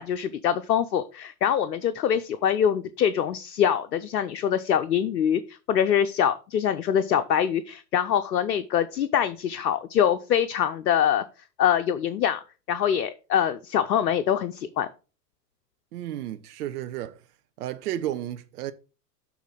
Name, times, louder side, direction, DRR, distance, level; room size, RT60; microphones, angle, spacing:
voice 1, 0.0-11.2 11.6-12.4 12.7-14.9, left 9 dB, 85° left, 0.7 m, -24 dB
voice 2, 15.9-17.2 17.6-18.7, right 12 dB, 70° right, 0.8 m, -32 dB
7.1 x 3.8 x 5.7 m
hypercardioid pair, 110°, 48 cm